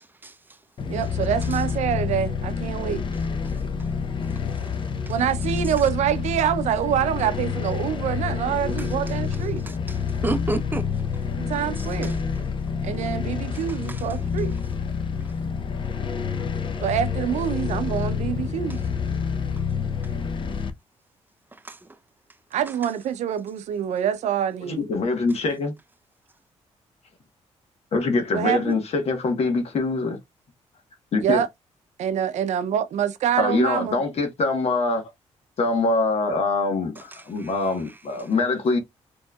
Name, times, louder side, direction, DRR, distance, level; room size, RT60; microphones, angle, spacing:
sound 1, 0.8-20.7, left 6 dB, 45° left, 0.7 m, -28 dB
voice 1, 0.9-3.0 5.1-9.7 11.4-12.2 12.8-14.6 16.8-18.8 22.5-24.8 28.3-28.8 31.2-31.5 32.0-34.0, right 9 dB, 75° right, 0.5 m, -26 dB
voice 2, 9.7-10.9 11.8-12.1 13.7-14.1 21.6-21.8 37.1-37.6, right 3 dB, 15° right, 0.6 m, -32 dB
voice 3, 24.7-25.7 27.9-30.2 31.1-31.4 33.4-35.0 35.6-38.8, left 3 dB, 60° left, 1.2 m, -24 dB
4.3 x 3.1 x 2.3 m
cardioid pair, 90°, 12 cm